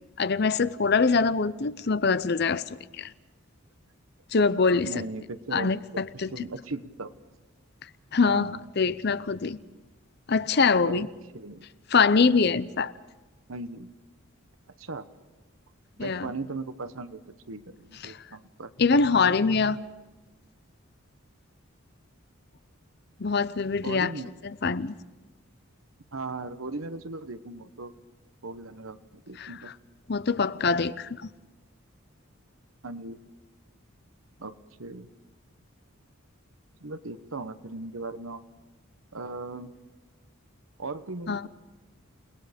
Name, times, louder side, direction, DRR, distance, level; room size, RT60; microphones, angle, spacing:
voice 1, 0.2-2.6 3.0-3.1 4.3-4.9 5.5-6.3 8.1-9.6 10.3-11.1 11.9-12.9 16.0-16.3 18.0-18.2 18.8-19.8 23.2-24.1 24.6-24.9 29.4-29.5 30.1-31.2 41.3-41.5, left 4 dB, 50° left, 0.7 m, -24 dB
voice 2, 4.8-7.1 8.2-8.6 9.7-9.8 10.8-11.1 11.3-11.7 13.5-13.9 14.8-15.1 16.0-17.2 17.5-18.7 23.8-24.4 26.1-27.9 28.4-29.7 32.8-33.2 34.4-34.5 34.8-35.1 36.8-38.4 39.1-39.7 40.8-41.5, right 3 dB, 75° right, 1.2 m, -38 dB
29.5 x 19.5 x 5.2 m
head